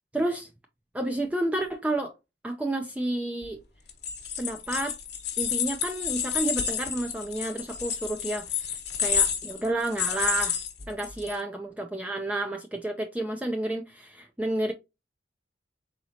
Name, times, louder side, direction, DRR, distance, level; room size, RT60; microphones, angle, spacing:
voice 1, 0.1-0.5 0.9-2.1 2.4-3.6 4.4-5.0 5.4-8.7 9.0-10.6 10.9-14.7, right 2 dB, 10° right, 0.4 m, -30 dB
sound 1, 3.9-11.3, left 7 dB, 65° left, 1.0 m, -30 dB
4.2 x 3.9 x 2.8 m
head